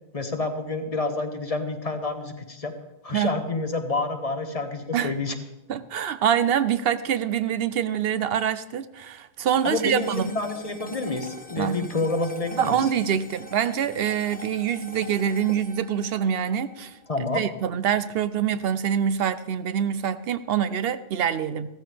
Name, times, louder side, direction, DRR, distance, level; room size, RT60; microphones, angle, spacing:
voice 1, 0.1-2.7 3.0-5.3 9.6-12.9 17.1-17.4, left 3 dB, 35° left, 7 dB, 1.0 m, -28 dB
voice 2, 5.7-10.3 11.6-11.9 12.6-17.0 17.3-21.7, right 9 dB, 70° right, 13 dB, 0.8 m, -25 dB
sound 1, 9.5-18.0, left 2 dB, 10° left, 0.8 m, -44 dB
15.0 x 13.5 x 3.4 m, 0.96 s
omnidirectional pair, 1.1 m